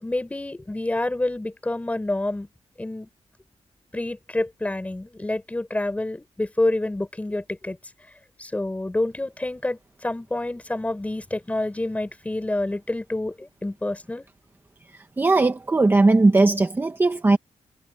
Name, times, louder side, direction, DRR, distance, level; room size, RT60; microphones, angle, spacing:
voice 1, 0.0-2.5 2.8-3.1 3.9-7.8 8.4-14.2, left 2 dB, 10° left, 6.4 m, -28 dB
voice 2, 15.2-17.4, right 3 dB, 20° right, 1.2 m, -18 dB
wide cardioid pair, 165°, 12 cm